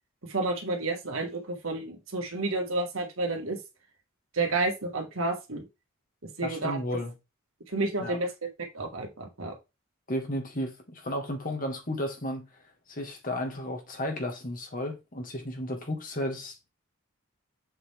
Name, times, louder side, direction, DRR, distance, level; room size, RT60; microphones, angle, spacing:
voice 1, 0.3-3.6 4.3-5.6 6.2-6.8 7.7-8.3 8.7-9.5, right 2 dB, 80° right, 1.9 m, -30 dB
voice 2, 6.4-7.1 8.0-8.2 10.1-12.5 12.9-16.7, left 1 dB, 40° left, 2.1 m, -33 dB
7.5 x 4.3 x 3.7 m
head